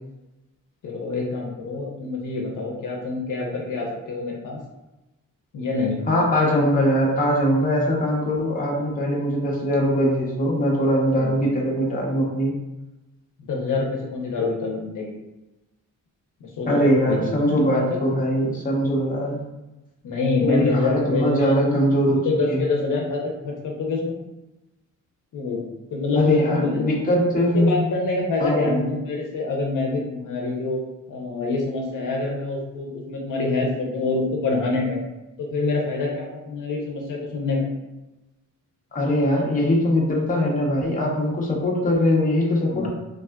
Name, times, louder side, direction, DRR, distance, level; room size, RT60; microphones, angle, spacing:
voice 1, 0.8-4.6 5.5-6.1 11.2-11.3 13.4-15.1 16.4-18.0 20.0-21.8 22.1-24.2 25.3-25.6 25.9-26.9 27.5-30.8 31.1-35.0 35.4-37.6 42.7-42.9, left 3 dB, 70° left, -1 dB, 0.6 m, -26 dB
voice 2, 6.1-12.5 16.7-19.4 20.4-22.2 22.5-22.7 26.2-27.8 28.4-28.8 38.9-42.9, equal, 25° left, -3 dB, 0.7 m, -21 dB
3.5 x 2.4 x 2.2 m, 1.0 s
wide cardioid pair, 115°, 32 cm